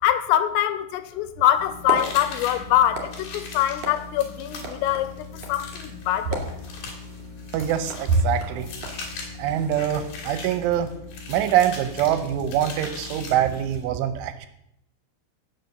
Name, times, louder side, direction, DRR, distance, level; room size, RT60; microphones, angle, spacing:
voice 1, 0.0-6.4, left 12 dB, 90° left, 3.4 m, -24 dB
sound 1, 1.5-10.1, right 2 dB, 40° right, 3.0 m, -33 dB
sound 2, 1.6-13.7, left 4 dB, 70° left, 3.1 m, -43 dB
sound 3, 1.9-13.8, left 4 dB, 55° left, 4.1 m, -40 dB
voice 2, 7.5-8.7 9.4-10.9 11.3-14.5, right 11 dB, 80° right, 3.0 m, -24 dB
17.0 x 6.5 x 6.6 m
omnidirectional pair, 5.9 m